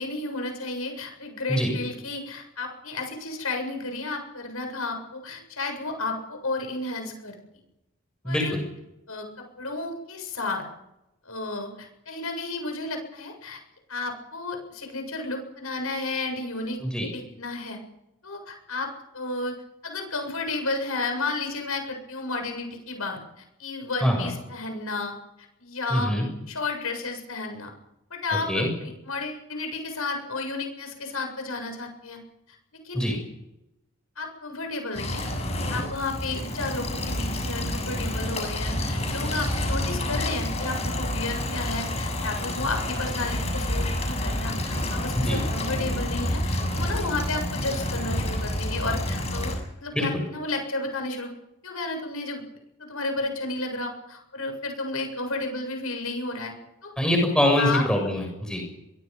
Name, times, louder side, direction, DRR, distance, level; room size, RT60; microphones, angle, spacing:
voice 1, 0.0-7.3 8.2-8.6 9.1-10.6 11.2-13.6 13.9-17.8 18.2-25.1 25.6-26.1 26.5-27.7 28.1-32.2 32.8-33.1 34.2-35.3 35.7-51.3 51.6-52.4 52.8-56.5 56.8-56.9 57.6-57.9, left 3 dB, 80° left, 4 dB, 7.6 m, -32 dB
voice 2, 8.2-8.6 16.8-17.1 24.0-24.3 25.9-26.3 28.5-28.7 32.9-33.2 45.1-45.4 49.9-50.1 57.0-58.6, equal, 5° left, 1 dB, 7.1 m, -24 dB
sound 1, 34.9-49.6, left 1 dB, 30° left, 7.3 m, -29 dB
25.5 x 23.0 x 5.5 m, 0.89 s
head